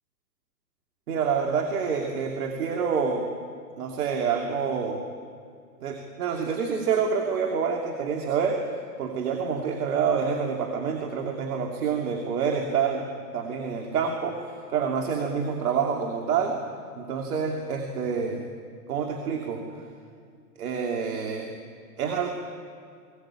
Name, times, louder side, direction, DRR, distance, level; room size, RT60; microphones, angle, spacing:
voice 1, 1.1-3.3 3.8-5.0 5.8-8.6 9.0-13.1 13.3-16.6 17.0-18.4 18.9-19.6 20.6-21.5 22.0-22.3, right 6 dB, 60° right, 2 dB, 2.8 m, -27 dB
20.5 x 18.5 x 8.7 m, 2.2 s
hypercardioid pair, 135°, 50 cm